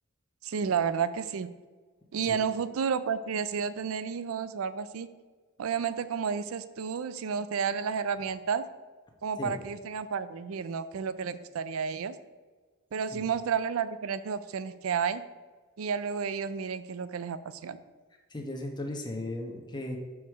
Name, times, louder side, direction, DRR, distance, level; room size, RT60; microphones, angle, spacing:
voice 1, 0.4-1.5 2.1-5.1 5.6-8.7 9.2-12.1 12.9-15.2 15.8-17.8, right 6 dB, 70° right, 14 dB, 0.4 m, -31 dB
voice 2, 18.3-20.0, left 1 dB, 20° left, 1 dB, 1.0 m, -36 dB
5.4 x 4.7 x 6.3 m, 1.4 s
head